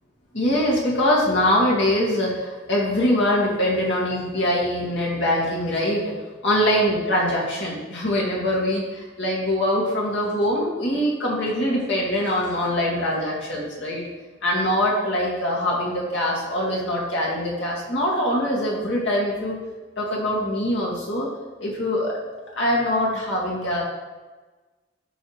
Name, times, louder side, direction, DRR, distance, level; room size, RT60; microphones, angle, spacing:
voice 1, 0.3-6.1 6.4-14.0 14.4-19.6 20.0-21.3 21.6-22.2 22.6-23.8, left 1 dB, 65° left, -4 dB, 2.5 m, -23 dB
13.0 x 4.8 x 3.4 m, 1.3 s
head